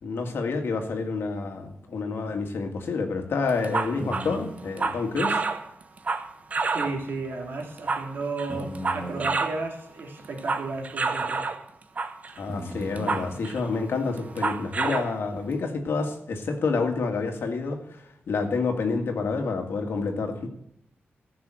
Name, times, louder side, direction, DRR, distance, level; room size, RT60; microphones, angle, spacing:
voice 1, 0.0-5.4 12.4-20.5, left 4 dB, 70° left, 4 dB, 1.9 m, -28 dB
sound 1, 2.3-2.4 2.8-2.9 4.0-4.6 6.6-6.7 7.0-7.1 8.5-9.3 11.4-11.5 12.5-13.6, equal, 5° right, 2.0 m, -37 dB
sound 2, 3.5-7.1 7.6-9.6 10.0-11.6 12.0-12.4 12.8-13.7 14.2-15.1, right 4 dB, 35° right, 0.8 m, -28 dB
voice 2, 6.7-11.5, right 3 dB, 60° right, 1 dB, 2.8 m, -33 dB
14.5 x 6.1 x 7.6 m, 0.74 s
wide cardioid pair, 165°, 4 cm